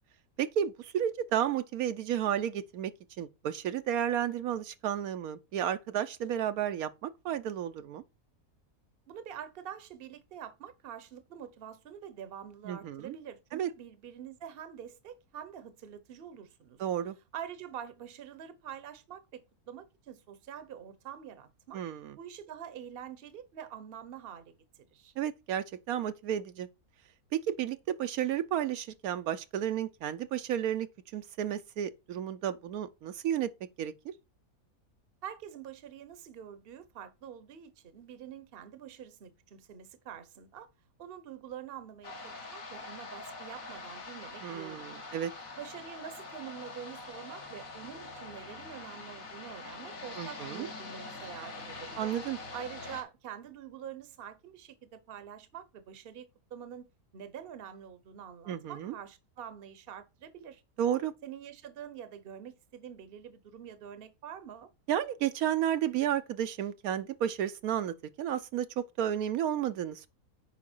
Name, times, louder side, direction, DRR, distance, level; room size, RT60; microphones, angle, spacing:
voice 1, 0.4-2.9 3.2-8.0 12.7-13.2 13.5-13.7 16.8-17.2 21.7-22.2 25.2-26.7 27.3-30.9 31.1-33.5 33.8-34.1 44.4-45.3 50.2-50.7 52.0-52.4 58.5-59.0 60.8-61.1 64.9-70.1, right 10 dB, 75° right, 1.1 m, -32 dB
voice 2, 9.1-16.8 17.3-21.8 22.2-25.1 35.2-40.7 41.0-45.0 45.6-52.1 52.5-60.6 61.2-64.7, right 9 dB, 45° right, 0.9 m, -46 dB
sound 1, 42.0-53.0, left 3 dB, 65° left, 2.2 m, -44 dB
8.4 x 5.0 x 4.4 m
omnidirectional pair, 1.6 m